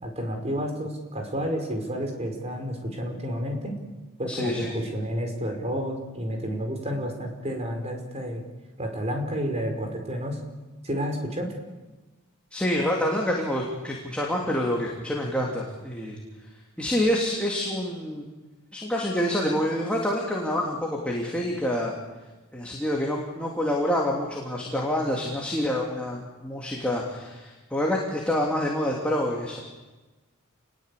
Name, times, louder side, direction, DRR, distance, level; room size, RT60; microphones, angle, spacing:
voice 1, 0.0-3.7 4.2-8.4 8.8-10.4 10.8-11.5, equal, 30° right, 3 dB, 5.2 m, -30 dB
voice 2, 4.3-4.7 12.5-16.2 16.8-18.3 18.7-21.9 22.5-29.6, left 1 dB, 5° left, -2 dB, 3.2 m, -27 dB
29.5 x 20.5 x 8.6 m, 1.2 s
head